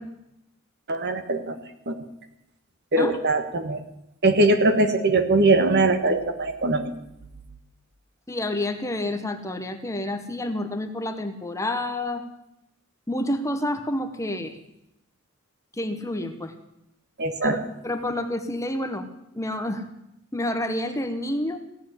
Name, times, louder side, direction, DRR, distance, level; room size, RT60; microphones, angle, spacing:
voice 1, 0.9-1.6 1.9-2.0 2.9-3.8 4.2-6.9 17.2-17.6, right 2 dB, 50° right, 8 dB, 1.5 m, -21 dB
voice 2, 8.3-12.2 13.1-14.6 15.7-16.5 17.4-17.6 17.8-19.1 19.3-19.9 20.3-21.6, left 1 dB, 15° left, 7 dB, 1.0 m, -29 dB
16.5 x 7.4 x 9.9 m, 0.85 s
head